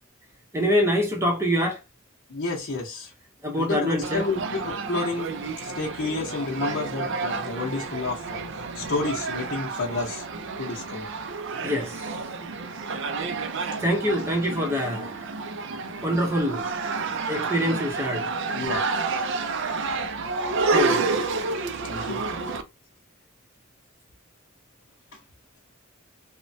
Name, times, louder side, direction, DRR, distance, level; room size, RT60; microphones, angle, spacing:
voice 1, 0.5-1.8 3.4-4.3 11.6-12.1 13.8-15.3 16.0-16.7 17.3-18.3 20.7-21.0, equal, 15° right, 0.6 m, -25 dB
voice 2, 2.3-3.1 3.5-5.3 5.6-10.2 10.6-11.1 18.5-18.8 21.8-22.2 25.1-25.2, left 3 dB, 55° left, 0.7 m, -30 dB
sound 1, 4.0-22.6, right 4 dB, 60° right, 0.4 m, -30 dB
3.1 x 2.1 x 2.6 m
head